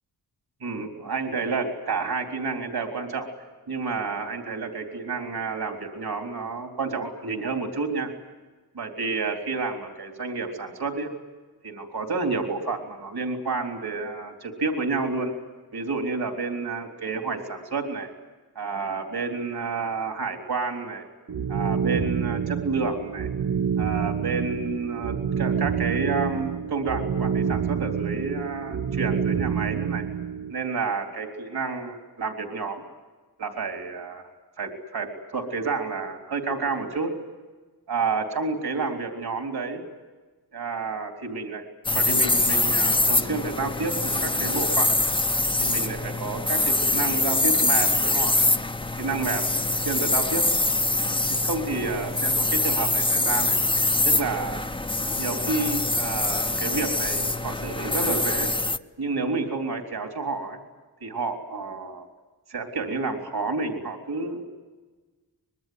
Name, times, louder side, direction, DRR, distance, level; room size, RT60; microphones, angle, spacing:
voice 1, 0.6-3.3 3.7-8.1 8.7-11.1 11.6-15.3 15.7-18.1 18.6-21.1 21.5-23.3 23.8-30.0 30.5-32.8 33.4-34.2 34.6-35.1 35.3-37.1 37.9-39.8 40.5-41.7 41.9-45.1 45.6-48.5 49.0-50.5 51.3-53.6 54.0-54.7 55.2-58.5 59.0-60.6 61.0-62.1 62.5-64.4, right 4 dB, 70° right, 3 dB, 3.7 m, -30 dB
sound 1, 21.3-30.5, right 7 dB, 45° right, 0.8 m, -27 dB
sound 2, 41.8-58.8, left 2 dB, 15° left, 0.8 m, -24 dB
25.0 x 22.0 x 9.4 m, 1.3 s
wide cardioid pair, 90°, 39 cm